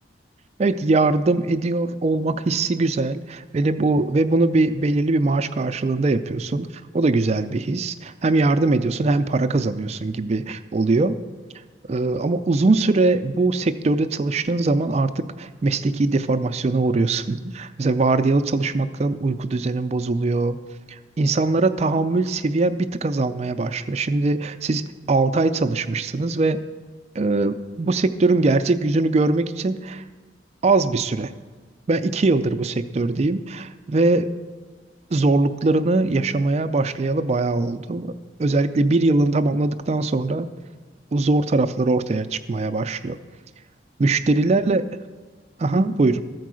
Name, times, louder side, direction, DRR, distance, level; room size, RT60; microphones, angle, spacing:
voice 1, 0.6-6.7 6.9-11.2 11.9-20.6 20.9-26.6 27.2-30.0 30.6-31.3 31.9-34.3 35.1-38.1 38.4-40.5 41.1-43.2 44.0-44.9 45.6-46.2, right 3 dB, 35° right, 10 dB, 0.4 m, -21 dB
13.5 x 4.6 x 6.2 m, 1.4 s
head